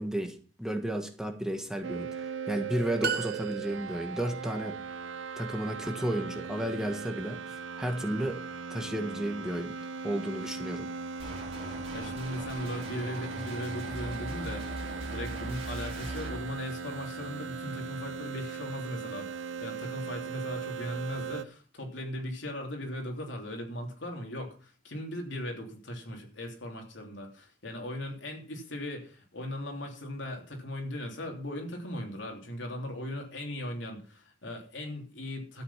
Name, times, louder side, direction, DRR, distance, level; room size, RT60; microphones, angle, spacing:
voice 1, 0.0-4.8 5.4-8.4 8.7-9.8 10.0-10.9, right 1 dB, 5° right, 3 dB, 1.4 m, -33 dB
sound 1, 1.8-21.4, right 5 dB, 85° right, 0.6 m, -39 dB
sound 2, 3.0-4.2, right 5 dB, 55° right, 1.0 m, -34 dB
sound 3, 11.2-16.4, right 1 dB, 35° right, 5.1 m, -40 dB
voice 2, 11.9-35.6, left 1 dB, 75° left, 2 dB, 3.3 m, -38 dB
13.0 x 8.1 x 5.7 m, 0.40 s
head